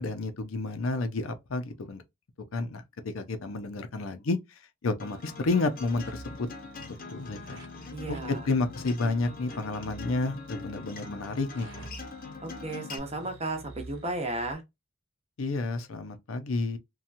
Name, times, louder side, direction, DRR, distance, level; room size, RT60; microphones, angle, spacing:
voice 1, 0.0-2.0 2.5-6.5 6.8-7.6 8.1-11.9 15.4-16.8, left 3 dB, 80° left, 0.6 m, -31 dB
Acoustic guitar, 5.0-13.0, left 4 dB, 45° left, 0.7 m, -43 dB
sound 1, 5.0-14.5, right 1 dB, 65° right, 1.1 m, -49 dB
voice 2, 7.9-8.4 12.4-14.6, right 2 dB, 30° right, 0.8 m, -34 dB
2.8 x 2.3 x 2.5 m
head